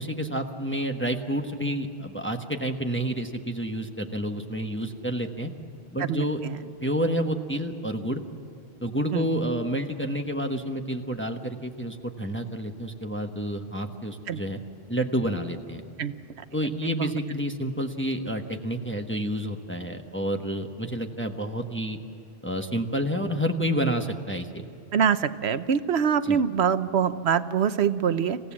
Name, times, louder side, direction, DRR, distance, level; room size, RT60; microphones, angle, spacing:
voice 1, 0.0-5.5 5.9-6.4 6.8-8.2 8.8-14.6 14.9-15.8 16.5-22.0 22.4-24.6 26.2-26.4, equal, 10° left, 4 dB, 1.1 m, -29 dB
voice 2, 6.0-6.6 9.1-9.3 14.3-14.4 16.0-16.1 16.8-17.1 24.9-28.4, right 7 dB, 85° right, 12 dB, 1.1 m, -24 dB
27.0 x 16.0 x 7.4 m, 2.6 s
omnidirectional pair, 1.1 m